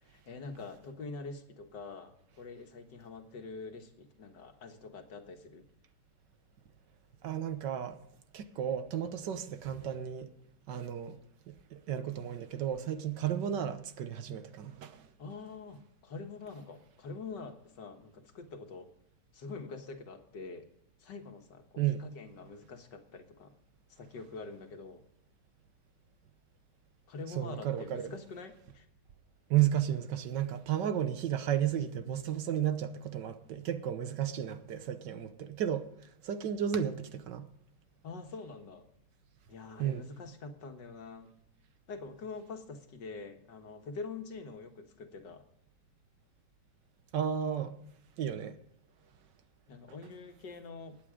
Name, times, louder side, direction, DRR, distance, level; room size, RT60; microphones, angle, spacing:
voice 1, 0.0-5.7 15.2-18.9 19.3-20.7 21.0-23.5 24.0-25.0 27.1-28.9 38.0-38.9 39.5-41.3 41.9-45.4 49.7-51.0, left 4 dB, 80° left, 2.2 m, -45 dB
voice 2, 7.2-8.0 8.3-10.3 10.7-11.2 11.5-15.1 21.8-22.1 27.4-28.1 29.5-35.9 36.2-37.5 39.8-40.0 47.1-47.8 48.2-48.6, right 10 dB, 80° right, 1.6 m, -33 dB
19.0 x 8.6 x 5.0 m
omnidirectional pair, 1.9 m